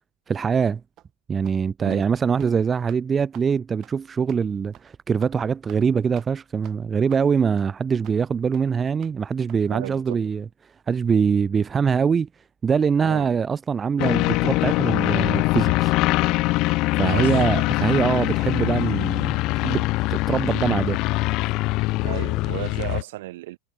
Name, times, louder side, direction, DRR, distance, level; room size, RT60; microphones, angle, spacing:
voice 1, 0.3-0.8 1.3-10.4 10.9-12.3 12.6-15.9 17.0-21.0, right 6 dB, 20° right, 0.5 m, -23 dB
sound 1, 1.0-1.1 1.4-1.6 1.9-2.0 2.3-2.5 2.9-3.0 3.3-3.5 3.8-3.9 4.3-4.4 4.7-4.9 5.2-5.3 5.7-5.9 6.1-6.3 6.6-6.8 7.1-7.3 7.6-7.7 8.0-8.2 8.5-8.6 9.0-9.2 9.5-9.6 9.9-10.0, right 14 dB, 40° right, 7.2 m, -49 dB
voice 2, 9.7-10.2 13.0-13.3 17.1-17.7 22.0-23.6, right 17 dB, 70° right, 3.4 m, -34 dB
sound 2, 14.0-23.0, left 21 dB, 50° left, 1.8 m, -23 dB
supercardioid pair, 120°, 0 cm